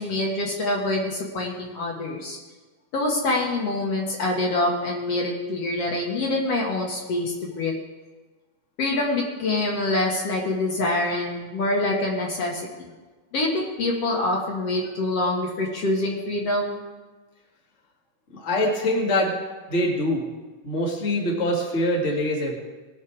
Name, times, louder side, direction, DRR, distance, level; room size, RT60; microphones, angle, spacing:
voice 1, 0.0-2.4 2.9-7.7 8.8-12.7 13.3-16.8, left 2 dB, 55° left, -2 dB, 2.4 m, -25 dB
voice 2, 18.3-19.3 19.7-20.3 20.6-22.6, left 1 dB, 30° left, -2 dB, 1.8 m, -24 dB
20.0 x 6.7 x 4.7 m, 1.3 s
omnidirectional pair, 3.5 m